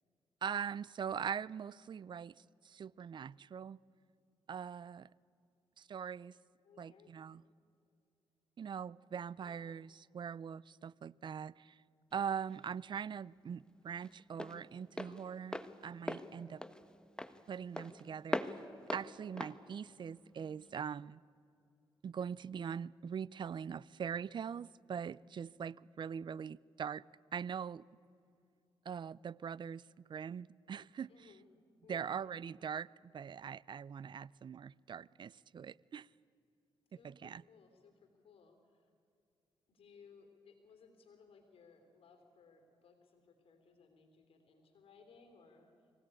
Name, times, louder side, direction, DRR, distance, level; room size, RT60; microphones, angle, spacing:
voice 1, 0.4-2.3 2.6-3.8 4.5-5.1 5.8-6.4 6.8-7.4 8.6-11.8 12.1-16.6 17.5-18.4 18.9-21.2 22.0-27.0 27.3-27.8 28.9-29.8 30.1-31.1 31.9-36.1 37.0-37.4, right 7 dB, 50° right, 0.5 m, -42 dB
voice 2, 6.6-7.5 9.4-9.8 31.1-31.4 31.8-32.1 37.0-38.9 39.7-45.9, left 5 dB, 70° left, 3.3 m, -62 dB
Walk footsteps, 12.1-20.8, left 1 dB, 10° left, 1.2 m, -43 dB
23.5 x 17.0 x 9.9 m
cardioid pair, 65°, 10 cm